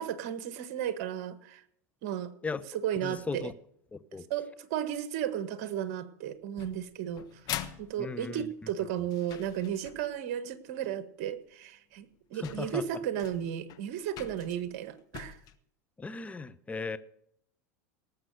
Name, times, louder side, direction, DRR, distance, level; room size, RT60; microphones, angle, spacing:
voice 1, 0.0-1.6 2.0-2.3 2.7-3.5 4.3-7.4 7.8-15.4, right 10 dB, 60° right, 1.5 m, -34 dB
voice 2, 3.0-3.5 4.1-4.3 8.0-8.5 12.4-12.8 16.0-17.0, left 4 dB, 15° left, 1.0 m, -36 dB
sound 1, 6.6-10.2 11.5-11.6 12.1-12.2 12.4-15.6, left 13 dB, 45° left, 1.3 m, -43 dB
18.5 x 7.6 x 6.5 m
hypercardioid pair, 90°, 9 cm